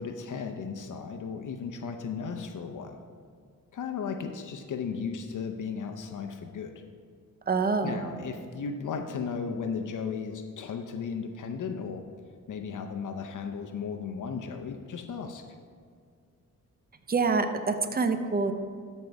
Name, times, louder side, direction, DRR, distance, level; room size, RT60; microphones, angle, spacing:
voice 1, 0.0-3.0 3.7-6.7 7.8-12.0 12.5-15.4, left 6 dB, 75° left, 5 dB, 0.7 m, -35 dB
voice 2, 7.5-8.0 17.1-18.5, right 4 dB, 30° right, 8 dB, 0.7 m, -26 dB
13.0 x 5.4 x 4.7 m, 2.1 s
cardioid pair, 90°, 31 cm